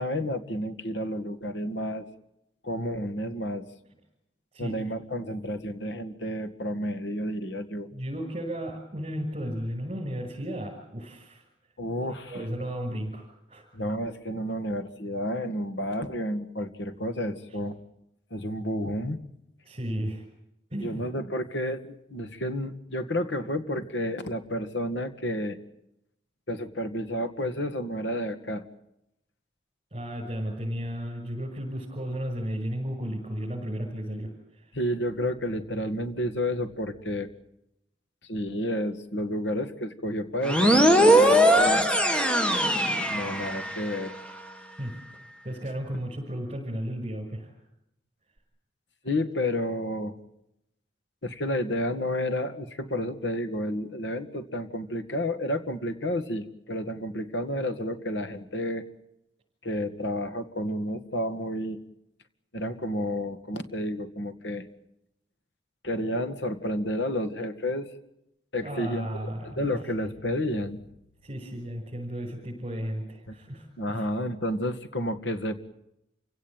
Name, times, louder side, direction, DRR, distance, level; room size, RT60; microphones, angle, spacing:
voice 1, 0.0-2.1 2.6-3.7 4.6-7.9 11.8-12.4 13.7-17.8 18.3-19.2 20.8-25.6 26.5-28.6 34.7-37.3 38.3-41.9 43.1-44.2 49.0-50.1 51.2-58.8 59.6-61.8 62.5-64.6 65.8-67.9 68.5-69.1 69.4-70.8 73.8-75.5, equal, 75° left, 9 dB, 2.0 m, -31 dB
voice 2, 7.9-11.5 12.3-13.6 17.5-17.6 19.6-20.2 20.7-21.0 29.9-34.7 44.8-45.0 45.4-47.5 68.6-70.1 71.2-74.1, equal, 30° right, -2 dB, 6.2 m, -34 dB
sound 1, 40.4-43.9, equal, 5° left, 1.7 m, -20 dB
28.0 x 17.5 x 9.0 m, 0.84 s
head